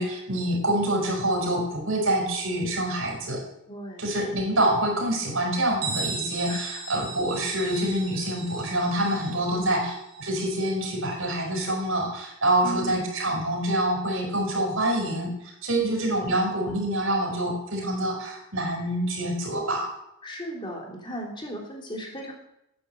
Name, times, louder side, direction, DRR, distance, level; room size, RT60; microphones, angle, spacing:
voice 1, 0.0-3.4 4.0-19.9, right 1 dB, 70° right, 0 dB, 5.1 m, -26 dB
voice 2, 3.7-4.1 6.5-7.0 9.5-9.7 12.6-13.0 20.2-22.3, right 1 dB, 20° left, 0 dB, 3.1 m, -36 dB
Bell, 5.8-11.3, right 4 dB, 45° right, 3.2 m, -37 dB
12.0 x 9.2 x 8.0 m, 0.82 s
head